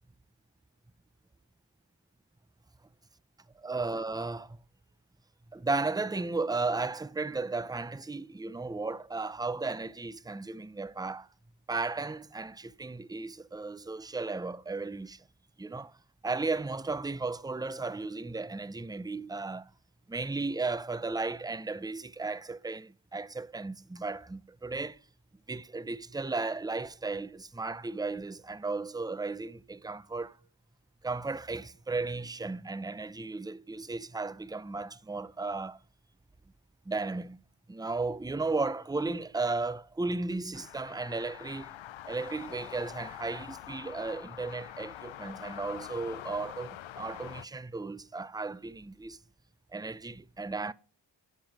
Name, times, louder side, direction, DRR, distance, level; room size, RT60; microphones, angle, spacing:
voice 1, 3.6-4.6 5.5-11.3 11.7-15.2 15.6-15.9 16.2-19.7 20.1-25.0 25.5-30.4 31.0-35.8 36.9-37.4 37.7-41.7 42.1-49.2 49.7-50.7, right 3 dB, 10° right, 0.6 m, -35 dB
sound 1, 40.5-47.5, left 12 dB, 85° left, 0.6 m, -45 dB
11.5 x 7.6 x 7.4 m
cardioid pair, 45°, 46 cm